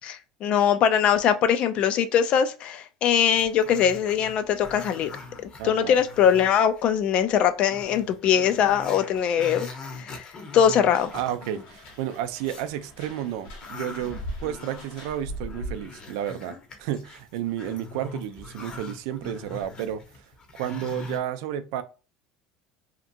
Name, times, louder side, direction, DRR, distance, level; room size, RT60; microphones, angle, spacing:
voice 1, 0.0-5.1 5.6-9.7 10.0-10.3 10.5-11.1, left 8 dB, 55° left, 0.4 m, -22 dB
Growling, 3.3-6.8 7.2-7.3 7.6-12.7 13.1-21.2, left 3 dB, 40° left, 0.9 m, -42 dB
voice 2, 5.6-6.0 11.1-20.3 20.5-21.8, right 11 dB, 80° right, 0.4 m, -32 dB
sound 1, 10.8-16.0, equal, 75° left, 1.1 m, -40 dB
2.9 x 2.4 x 2.6 m
supercardioid pair, 100°, 2 cm